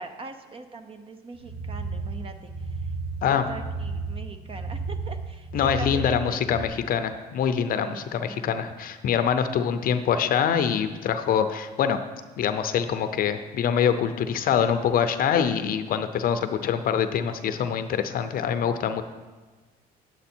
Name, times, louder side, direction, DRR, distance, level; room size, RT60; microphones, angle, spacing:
voice 1, 0.0-2.9 3.3-6.5 7.8-8.7, right 3 dB, 35° right, 8 dB, 0.7 m, -41 dB
sound 1, 1.3-6.7, right 4 dB, 55° right, 1.2 m, -33 dB
voice 2, 5.5-12.0 12.4-19.0, left 8 dB, 60° left, 9 dB, 0.6 m, -24 dB
9.4 x 8.0 x 4.4 m, 1.3 s
cardioid pair, 110°, 17 cm